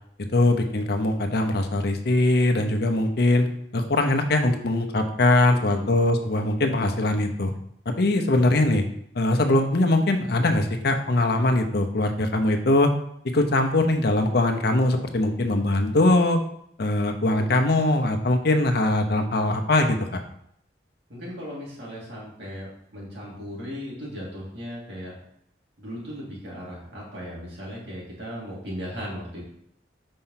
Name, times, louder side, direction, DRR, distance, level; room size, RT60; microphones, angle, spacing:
voice 1, 0.3-3.5 3.7-7.5 7.9-8.8 9.1-12.9 13.2-16.4 16.8-20.2, left 2 dB, 65° left, 5 dB, 0.8 m, -21 dB
voice 2, 21.1-25.2 25.8-29.4, equal, 70° right, -5 dB, 2.8 m, -37 dB
5.4 x 4.5 x 5.7 m, 0.70 s
head